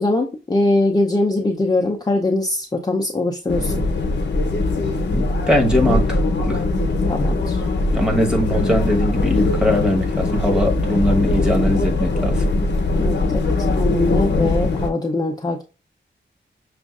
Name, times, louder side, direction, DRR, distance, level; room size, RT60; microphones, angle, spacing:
voice 1, 0.0-3.7 7.1-7.6 13.0-15.6, left 2 dB, 20° left, 0.5 m, -21 dB
sound 1, 3.5-14.9, left 2 dB, 65° left, 0.8 m, -21 dB
voice 2, 5.1-6.2 6.5-6.6 7.9-12.4, left 1 dB, 5° right, 1.2 m, -20 dB
6.2 x 2.5 x 2.4 m
wide cardioid pair, 90°, 19 cm